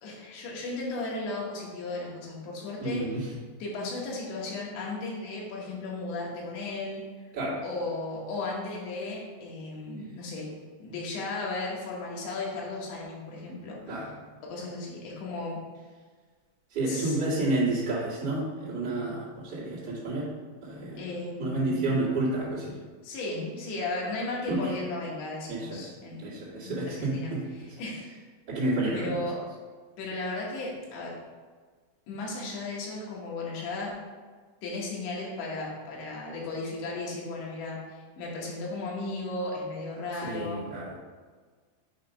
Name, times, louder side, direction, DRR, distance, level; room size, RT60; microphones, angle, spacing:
voice 1, 0.0-3.0 3.6-7.0 7.6-10.5 10.8-14.1 14.4-15.6 16.9-17.2 21.0-21.9 23.0-26.3 26.6-27.3 27.8-28.1 28.9-29.4 30.0-31.2 32.1-33.9 34.6-40.6, left 2 dB, 90° left, -3 dB, 3.6 m, -35 dB
voice 2, 2.8-3.3 7.3-7.6 13.9-14.1 16.7-20.3 20.6-21.0 21.4-22.7 24.5-24.7 25.5-25.9 26.2-27.4 28.5-29.2 40.2-41.0, right 2 dB, 35° right, -8 dB, 2.0 m, -30 dB
8.2 x 2.9 x 5.3 m, 1.5 s
omnidirectional pair, 4.9 m